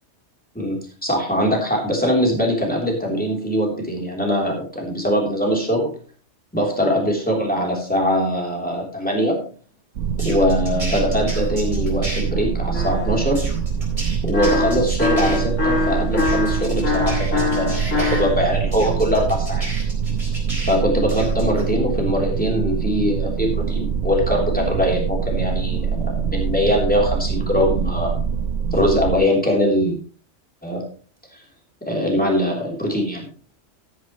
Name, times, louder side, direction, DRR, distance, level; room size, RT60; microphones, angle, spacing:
voice 1, 0.5-5.9 6.5-9.4 10.2-13.4 14.2-19.7 20.7-28.2 28.7-30.0 30.6-30.8 31.3-31.4 31.8-33.3, equal, 5° left, 0 dB, 3.5 m, -22 dB
sound 1, 10.0-29.2, right 6 dB, 85° right, 1.1 m, -24 dB
sound 2, 10.2-12.2 13.3-15.4 16.2-18.2 18.7-20.8 21.1-21.6, right 1 dB, 25° right, 4.4 m, -33 dB
sound 3, 12.7-13.3 14.3-18.4, left 4 dB, 90° left, 3.2 m, -23 dB
13.5 x 10.0 x 3.1 m, 0.39 s
omnidirectional pair, 1.3 m